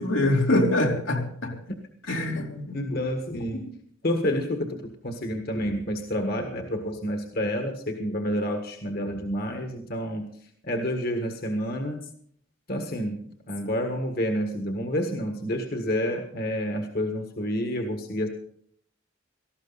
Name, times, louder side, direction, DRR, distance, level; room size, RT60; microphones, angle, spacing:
voice 1, 0.0-1.5 2.1-2.8, left 1 dB, 85° left, 0 dB, 3.2 m, -24 dB
voice 2, 2.7-3.6 4.0-4.8 5.0-10.3 10.6-12.0 12.7-18.3, equal, 50° left, 5 dB, 1.6 m, -29 dB
18.0 x 14.5 x 4.1 m, 0.64 s
head